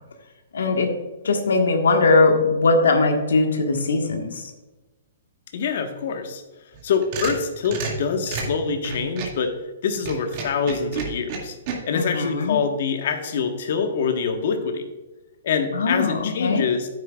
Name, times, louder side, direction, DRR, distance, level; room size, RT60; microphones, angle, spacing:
voice 1, 0.5-0.9 1.2-4.5 11.9-12.6 15.7-16.6, left 3 dB, 85° left, 3 dB, 1.4 m, -20 dB
voice 2, 5.5-6.4 6.8-11.6 11.9-14.8 15.4-16.9, left 5 dB, 60° left, 6 dB, 1.3 m, -25 dB
sound 1, 6.7-9.4 9.9-11.7, right 5 dB, 40° right, 2.1 m, -31 dB
9.8 x 9.1 x 2.4 m, 1.1 s
hypercardioid pair, 145°, 0 cm